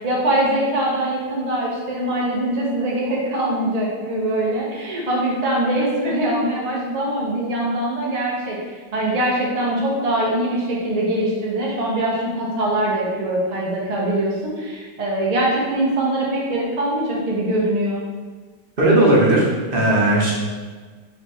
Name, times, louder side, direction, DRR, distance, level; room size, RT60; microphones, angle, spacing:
voice 1, 0.0-18.0, right 1 dB, 70° right, -4 dB, 0.3 m, -22 dB
voice 2, 18.8-20.3, right 1 dB, 45° right, -4 dB, 0.8 m, -16 dB
4.8 x 3.2 x 3.1 m, 1.4 s
omnidirectional pair, 1.9 m